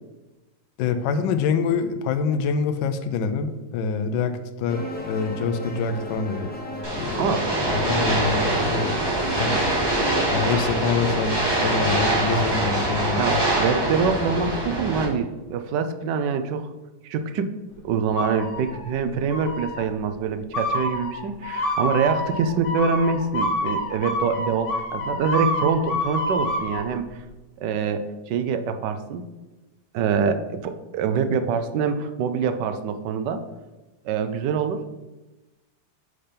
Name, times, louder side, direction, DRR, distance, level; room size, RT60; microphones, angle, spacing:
voice 1, 0.8-6.5 6.9-7.4 7.7-9.0 9.3-9.6 10.3-13.4, left 5 dB, 75° left, 9 dB, 1.2 m, -26 dB
sound 1, 4.7-10.3, left 2 dB, 15° left, 0.4 m, -35 dB
sound 2, 6.8-15.1, right 1 dB, 15° right, 1.0 m, -24 dB
voice 2, 7.1-7.5 12.1-12.2 13.1-16.7 17.0-17.5 17.8-27.2 27.6-29.2 29.9-33.4 34.0-34.8, right 5 dB, 70° right, 9 dB, 1.1 m, -25 dB
sound 3, 18.2-18.9 19.3-19.8 20.5-26.8, left 1 dB, 40° left, 0.8 m, -27 dB
6.6 x 3.4 x 5.7 m, 1.1 s
omnidirectional pair, 2.1 m